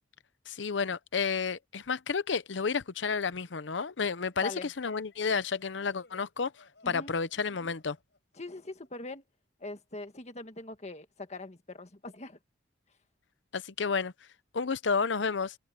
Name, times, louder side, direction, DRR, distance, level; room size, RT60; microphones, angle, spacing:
voice 1, 0.5-6.5 6.9-8.0 13.5-14.1 14.5-15.6, left 5 dB, 85° left, 0.7 m, -31 dB
sound 1, 4.3-8.9, left 3 dB, 70° left, 6.7 m, -62 dB
voice 2, 6.8-7.1 8.3-9.2 9.6-12.4, left 2 dB, 40° left, 1.8 m, -41 dB
head